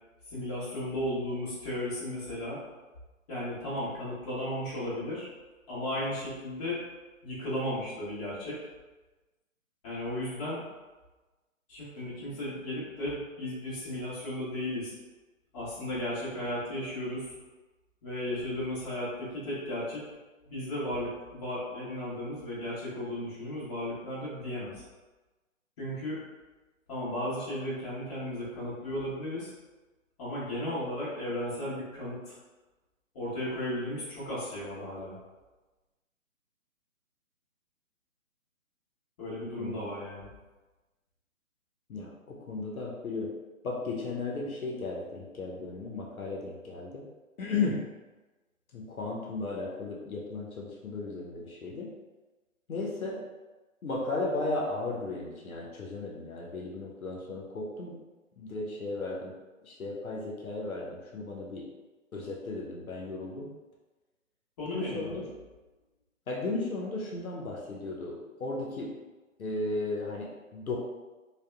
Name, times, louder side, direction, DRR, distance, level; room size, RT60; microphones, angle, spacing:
voice 1, 0.3-2.6 3.3-5.3 5.7-6.8 7.2-8.6 9.8-10.6 11.7-15.0 15.5-17.3 18.0-20.1 20.4-24.8 25.8-26.2 26.9-29.5 30.2-32.4 33.1-35.2 39.2-40.3 64.6-65.3, left 1 dB, 30° left, -10 dB, 1.1 m, -35 dB
voice 2, 39.6-39.9 41.9-43.3 43.6-47.0 47.4-47.9 48.7-51.9 52.7-53.3 53.8-58.0 58.4-59.3 59.6-61.7 62.1-63.5 64.7-65.2 66.3-69.0 69.4-70.8, left 3 dB, 90° left, -2 dB, 0.7 m, -35 dB
2.6 x 2.2 x 2.3 m, 1.2 s
figure-of-eight pair, 140°, 41 cm